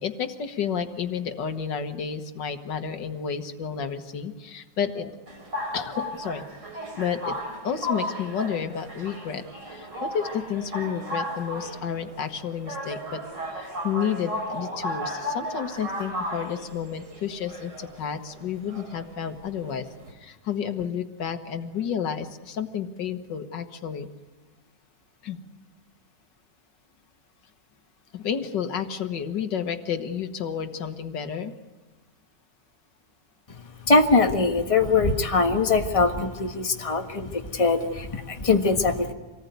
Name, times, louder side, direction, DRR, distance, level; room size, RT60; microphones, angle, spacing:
voice 1, 0.0-5.1 5.7-6.4 7.0-7.3 7.6-13.2 13.6-19.9 20.1-24.1 25.2-25.4 28.1-31.5, left 7 dB, 90° left, 8 dB, 2.0 m, -31 dB
sound 1, 5.3-20.1, equal, 80° right, 4.7 m, -35 dB
voice 2, 33.8-39.1, left 3 dB, 20° left, 4 dB, 1.5 m, -22 dB
26.5 x 19.0 x 9.3 m, 1.2 s
omnidirectional pair, 1.9 m